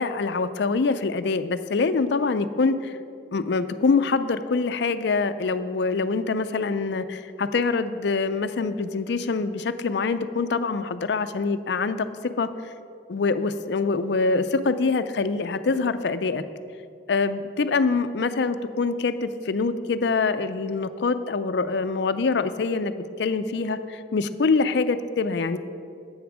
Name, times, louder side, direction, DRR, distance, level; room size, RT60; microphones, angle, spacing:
voice 1, 0.0-3.0 3.3-12.1 12.4-12.5 13.1-16.4 17.1-25.6, left 4 dB, 60° left, 11 dB, 0.5 m, -25 dB
9.4 x 8.0 x 6.2 m, 2.4 s
head